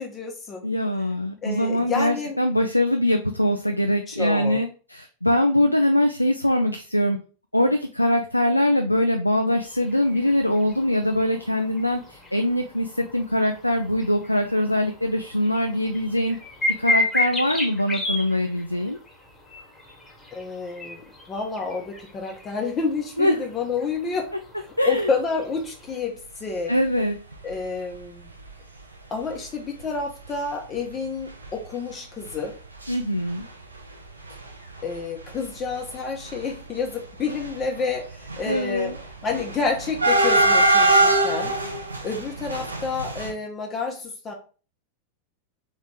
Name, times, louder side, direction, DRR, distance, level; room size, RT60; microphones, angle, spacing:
voice 1, 0.0-0.7 1.4-2.4 4.1-4.6 20.3-21.0 21.3-24.3 24.6-26.7 27.4-28.3 29.1-32.5 34.8-38.9 39.2-41.5 42.0-44.3, left 4 dB, 25° left, 2 dB, 0.8 m, -29 dB
voice 2, 0.6-7.2 7.5-16.4 16.8-19.0 23.2-23.3 24.8-25.1 26.7-27.2 32.9-33.4 38.5-39.0, left 1 dB, 90° left, 5 dB, 0.3 m, -22 dB
sound 1, 9.5-26.0, left 2 dB, 5° left, 1.4 m, -33 dB
sound 2, 27.3-27.5 28.0-28.1 28.3-28.5 29.3-29.4 29.8-30.0 30.2-30.4 30.7-32.9 33.2-33.9 34.2-43.3, right 2 dB, 80° right, 0.6 m, -24 dB
3.7 x 3.0 x 3.6 m, 0.37 s
figure-of-eight pair, 90°, 0 cm